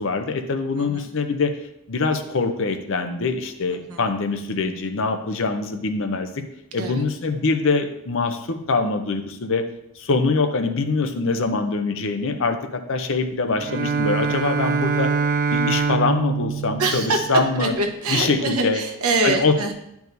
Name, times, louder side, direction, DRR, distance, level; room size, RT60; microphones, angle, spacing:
voice 1, 0.0-1.5 1.9-6.3 6.7-9.6 10.0-15.1 15.5-17.7 18.1-18.8 19.2-19.6, left 3 dB, 60° left, 7 dB, 0.7 m, -23 dB
voice 2, 3.7-4.0 6.8-7.1 16.8-17.3 17.6-19.7, right 3 dB, 75° right, 4 dB, 1.0 m, -24 dB
Bowed string instrument, 13.5-17.7, right 5 dB, 40° right, 0.6 m, -24 dB
10.5 x 4.7 x 2.7 m, 0.81 s
head